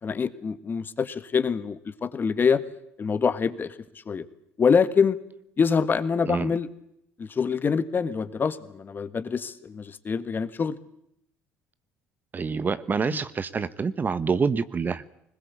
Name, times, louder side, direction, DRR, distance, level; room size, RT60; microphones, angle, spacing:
voice 1, 0.0-2.6 3.0-3.8 4.0-4.2 4.6-5.2 5.6-6.7 7.2-10.7 13.1-13.2, left 6 dB, 35° left, 13 dB, 1.6 m, -25 dB
voice 2, 12.3-15.0, right 5 dB, 30° right, 15 dB, 1.1 m, -26 dB
21.0 x 20.5 x 8.5 m, 0.77 s
hypercardioid pair, 75°, 6 cm